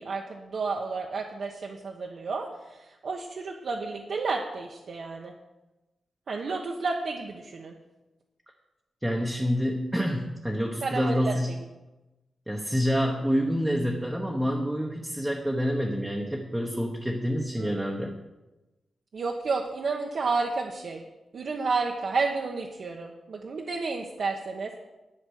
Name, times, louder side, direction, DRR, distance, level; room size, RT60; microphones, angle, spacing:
voice 1, 0.0-5.3 6.3-7.7 10.8-11.3 17.6-17.8 19.1-21.0 21.3-24.7, right 4 dB, 50° right, 1 dB, 1.1 m, -31 dB
voice 2, 9.0-11.5 12.5-18.1, equal, 5° right, 0 dB, 1.1 m, -27 dB
11.5 x 8.9 x 6.5 m, 1.0 s
wide cardioid pair, 175°, 0 cm